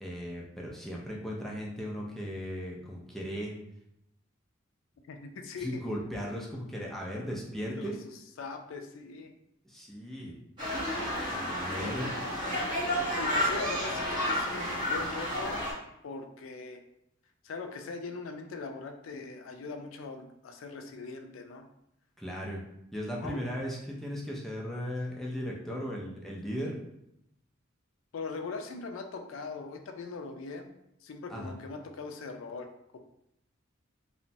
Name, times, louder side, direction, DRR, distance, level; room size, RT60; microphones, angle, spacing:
voice 1, 0.0-3.5 5.6-8.0 9.6-10.4 11.3-12.1 22.2-22.6 22.9-26.8 31.3-31.5, equal, ahead, -3 dB, 0.3 m, -37 dB
voice 2, 5.1-5.8 7.8-9.3 11.7-12.1 13.1-15.6 16.0-16.8 17.4-21.7 23.2-23.4 28.1-30.7 31.0-33.0, left 4 dB, 80° left, 6 dB, 0.4 m, -41 dB
sound 1, 10.6-15.7, equal, 25° right, 1.3 m, -31 dB
2.9 x 2.1 x 2.6 m, 0.81 s
head